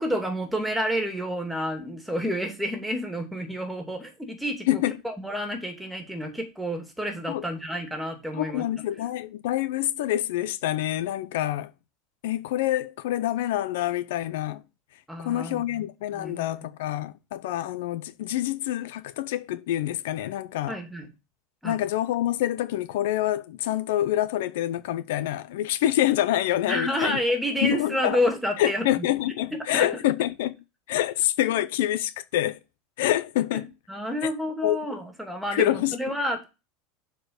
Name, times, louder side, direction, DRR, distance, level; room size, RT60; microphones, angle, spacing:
voice 1, 0.0-4.7 5.0-8.6 15.1-15.8 16.1-16.6 20.7-21.1 21.6-21.8 26.7-29.1 29.7-29.9 33.5-36.5, equal, 5° right, 2.4 m, -29 dB
voice 2, 8.3-11.7 12.2-14.6 15.2-20.8 21.6-27.2 27.6-28.2 28.6-30.6 30.9-32.6 33.0-33.7 34.6-34.8 35.5-36.0, left 13 dB, 80° left, 0.6 m, -26 dB
6.9 x 4.5 x 6.3 m
supercardioid pair, 120°, 0 cm